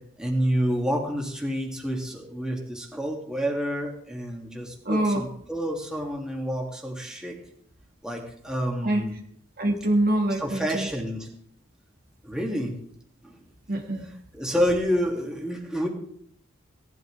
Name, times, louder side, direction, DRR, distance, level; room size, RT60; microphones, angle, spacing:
voice 1, 0.2-7.4 8.0-9.1 10.4-11.3 12.2-12.7 13.2-13.3 14.3-15.9, equal, 5° right, -1 dB, 2.7 m, -28 dB
voice 2, 4.9-5.3 8.8-9.0 9.6-10.9 13.7-14.1, right 1 dB, 50° right, 2 dB, 1.8 m, -24 dB
18.5 x 12.0 x 3.6 m, 0.64 s
head